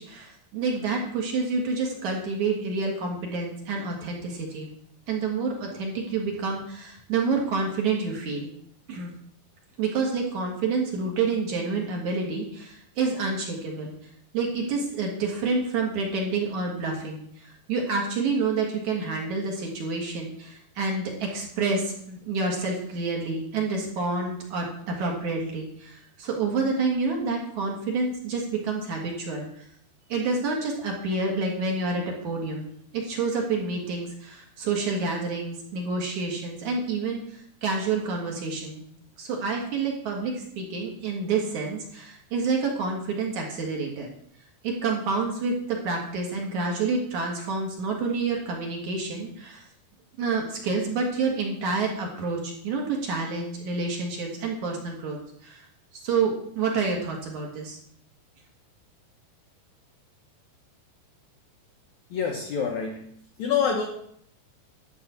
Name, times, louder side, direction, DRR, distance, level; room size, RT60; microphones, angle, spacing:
voice 1, 0.0-4.7 5.1-8.5 8.9-9.1 9.8-13.9 14.3-29.6 30.1-38.9 39.2-44.1 44.6-49.7 50.2-55.2 55.4-55.7 56.0-57.8, right 4 dB, 55° right, 0 dB, 2.8 m, -28 dB
voice 2, 62.1-63.1 63.4-63.8, left 6 dB, 70° left, 2 dB, 1.8 m, -26 dB
11.5 x 4.8 x 8.2 m, 0.66 s
omnidirectional pair, 4.6 m